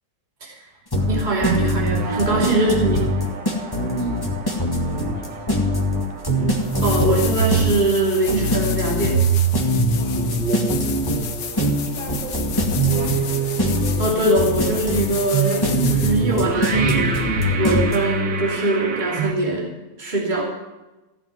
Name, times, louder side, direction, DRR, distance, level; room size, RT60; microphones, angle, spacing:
sound 1, 0.9-18.0, left 1 dB, 10° left, 1.8 m, -23 dB
sound 2, 1.0-19.3, right 6 dB, 70° right, 2.0 m, -26 dB
voice 1, 1.1-3.1 6.8-9.2 14.0-17.1 17.6-19.7 20.0-20.4, right 2 dB, 25° right, -3 dB, 2.9 m, -22 dB
voice 2, 3.5-4.2 4.6-6.4 9.9-10.3 11.0-11.4 11.8-13.6, equal, 85° right, -4 dB, 6.6 m, -40 dB
sound 3, 6.1-6.2 6.6-16.4 19.1-19.2, left 8 dB, 75° left, 1.6 m, -33 dB
15.5 x 7.3 x 9.5 m, 1.1 s
omnidirectional pair, 2.0 m